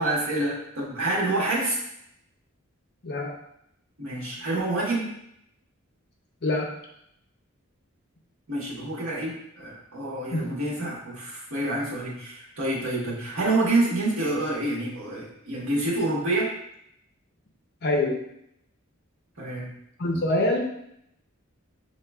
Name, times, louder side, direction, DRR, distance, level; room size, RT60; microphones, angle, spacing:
voice 1, 0.0-1.8 4.0-5.1 8.5-16.5 19.4-19.7, right 2 dB, 80° right, -4 dB, 1.4 m, -27 dB
voice 2, 6.4-6.7 10.3-10.5 10.8-10.9 17.8-18.2 20.0-20.6, left 2 dB, 50° left, 1 dB, 0.7 m, -25 dB
6.3 x 2.9 x 2.3 m, 0.76 s
head